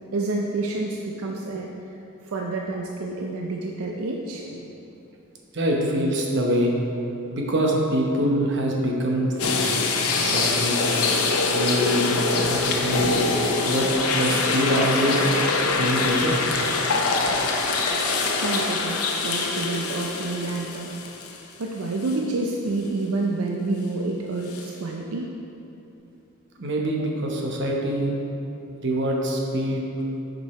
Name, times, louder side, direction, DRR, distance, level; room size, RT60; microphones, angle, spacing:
voice 1, 0.1-1.7 2.2-4.7 18.0-18.2 18.4-20.9 21.6-25.3 27.0-27.1, right 2 dB, 80° right, 0 dB, 0.5 m, -28 dB
voice 2, 5.5-6.7 7.3-9.7 10.2-10.9 11.5-12.2 12.5-13.3 13.7-15.3 15.8-16.4 26.6-28.1 28.8-30.1, right 1 dB, 55° right, -1 dB, 1.0 m, -24 dB
sound 1, 9.4-21.6 22.0-22.2 24.5-24.6, left 3 dB, 85° left, 0.7 m, -24 dB
7.5 x 5.3 x 4.3 m, 2.9 s
head